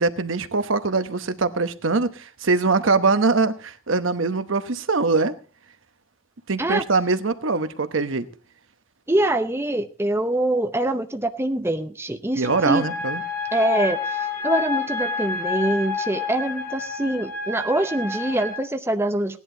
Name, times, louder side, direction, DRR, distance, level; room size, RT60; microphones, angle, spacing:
voice 1, 0.0-5.3 6.5-8.3 12.3-13.2, right 3 dB, 70° right, 1.0 m, -22 dB
voice 2, 9.1-12.8 13.5-14.0 14.4-19.4, right 1 dB, 10° right, 0.8 m, -24 dB
sound 1, 12.4-18.6, left 4 dB, 45° left, 3.8 m, -29 dB
17.0 x 11.0 x 3.8 m
head